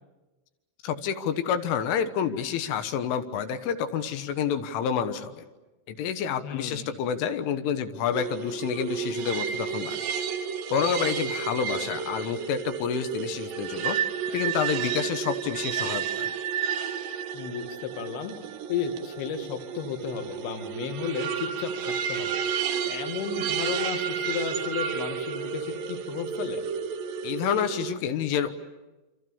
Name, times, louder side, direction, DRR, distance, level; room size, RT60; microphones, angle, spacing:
voice 1, 0.8-5.5 5.9-10.1 10.7-14.0 14.3-16.3 27.2-28.5, left 8 dB, 80° left, 9 dB, 3.6 m, -29 dB
voice 2, 6.4-7.0 17.3-18.3 18.7-22.3 22.9-26.6, left 7 dB, 60° left, 6 dB, 3.6 m, -33 dB
sound 1, 8.1-27.9, right 7 dB, 75° right, 2.2 m, -31 dB
28.5 x 27.0 x 7.1 m, 1.1 s
omnidirectional pair, 5.8 m